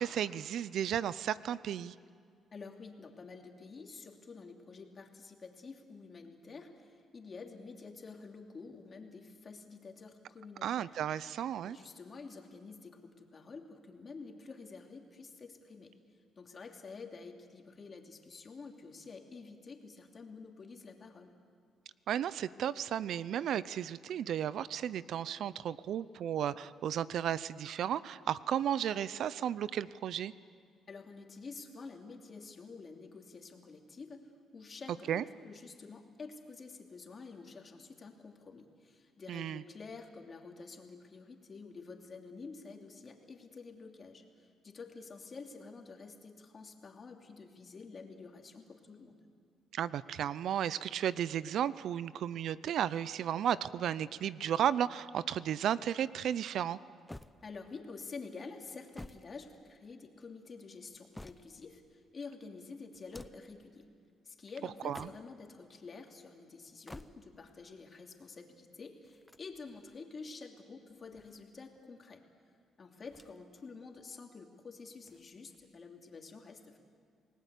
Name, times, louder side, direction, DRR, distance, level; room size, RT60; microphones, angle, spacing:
voice 1, 0.0-1.9 10.6-11.8 22.1-30.3 35.1-35.2 39.3-39.6 49.7-56.8 64.8-65.1, right 10 dB, 70° right, 18 dB, 0.6 m, -34 dB
voice 2, 2.5-10.9 11.6-15.9 16.4-21.3 30.9-49.2 57.4-63.9 64.2-72.2 72.8-76.8, left 4 dB, 40° left, 3 dB, 2.9 m, -49 dB
sound 1, 57.1-57.9 58.7-60.1 60.7-61.8 62.9-63.6 64.7-65.5 66.6-67.5 69.0-70.0 70.9-71.8 73.0-73.6 73.9-74.0 75.0-75.8, left 1 dB, 10° left, 0.7 m, -53 dB
28.5 x 19.0 x 8.4 m, 2.2 s
cardioid pair, 95°, 0 cm